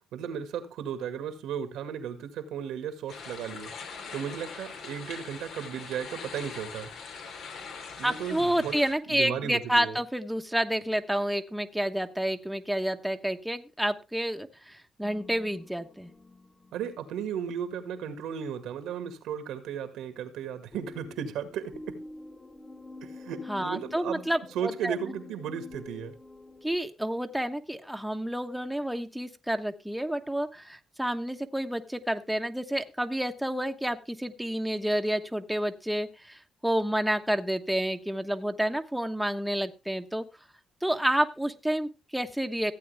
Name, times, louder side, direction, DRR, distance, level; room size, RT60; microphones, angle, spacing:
voice 1, 0.1-3.7 4.1-6.9 8.0-8.8 9.1-10.0 16.7-22.0 23.0-24.3 24.5-26.1, right 8 dB, 90° right, 9 dB, 2.0 m, -35 dB
sound 1, 3.1-8.9, left 5 dB, 80° left, 3.3 m, -42 dB
voice 2, 8.0-16.1 23.5-24.9 26.6-40.2 40.8-42.7, right 1 dB, 5° right, 6 dB, 1.1 m, -29 dB
sound 2, 15.0-18.2 20.7-26.8, left 2 dB, 20° left, 1.6 m, -48 dB
15.5 x 8.6 x 3.4 m, 0.27 s
cardioid pair, 90°, 0 cm